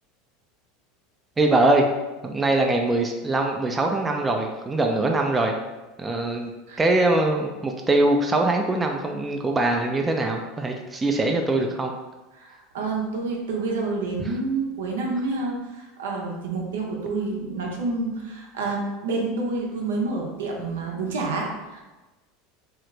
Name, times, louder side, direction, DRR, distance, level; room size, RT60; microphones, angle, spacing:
voice 1, 1.4-1.8 2.2-5.5 6.0-6.5 6.8-11.9, right 2 dB, 20° right, 2 dB, 0.4 m, -22 dB
voice 2, 12.3-21.8, right 3 dB, 85° right, -1 dB, 0.6 m, -28 dB
2.8 x 2.4 x 3.2 m, 1.1 s
hypercardioid pair, 95°, 0 cm